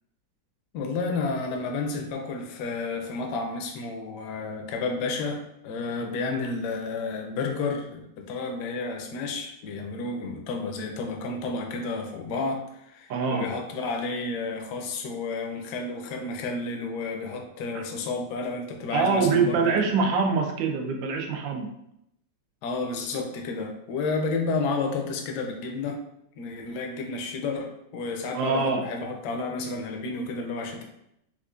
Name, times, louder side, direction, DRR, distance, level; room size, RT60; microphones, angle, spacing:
voice 1, 0.7-20.1 22.6-26.0 26.4-30.9, left 3 dB, 75° left, 3 dB, 1.1 m, -31 dB
voice 2, 13.1-13.5 17.7-17.8 18.9-21.7 28.3-28.8, right 4 dB, 85° right, 3 dB, 1.3 m, -24 dB
4.4 x 2.4 x 2.4 m, 0.78 s
omnidirectional pair, 2.0 m